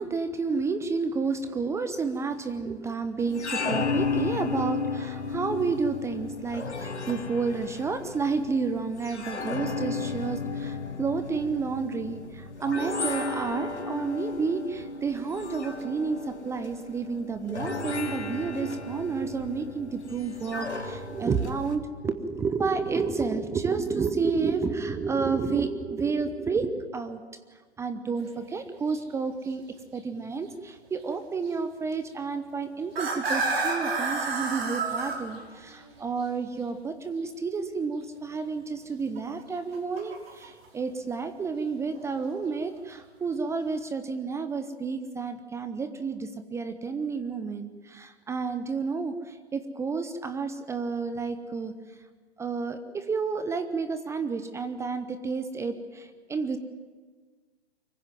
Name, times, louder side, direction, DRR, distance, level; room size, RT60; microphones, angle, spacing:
voice 1, 0.0-27.2 27.8-29.6 29.9-52.0 52.4-56.6, right 4 dB, 10° right, 10 dB, 0.7 m, -30 dB
sound 1, 3.2-21.8, left 4 dB, 90° left, 2.4 m, -34 dB
sound 2, 28.2-28.3 28.8-29.0 29.5-29.6 31.5-31.6 32.8-36.0 39.2-40.7 41.9-42.3, right 3 dB, 60° right, 5.3 m, -30 dB
24.0 x 15.5 x 9.3 m, 1.5 s
hypercardioid pair, 125°, 33 cm